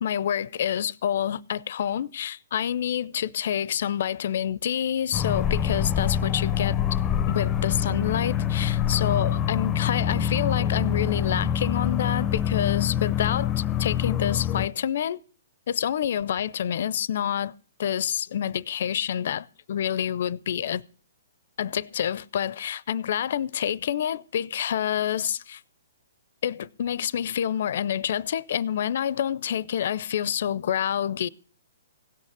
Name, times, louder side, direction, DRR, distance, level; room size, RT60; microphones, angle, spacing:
voice 1, 0.0-6.8 7.3-15.2 15.7-20.8 21.6-25.6 26.4-31.3, left 9 dB, 60° left, 0.5 m, -28 dB
sound 1, 5.1-14.7, left 9 dB, 15° left, 0.7 m, -25 dB
16.5 x 6.6 x 8.5 m
hypercardioid pair, 145°, 0 cm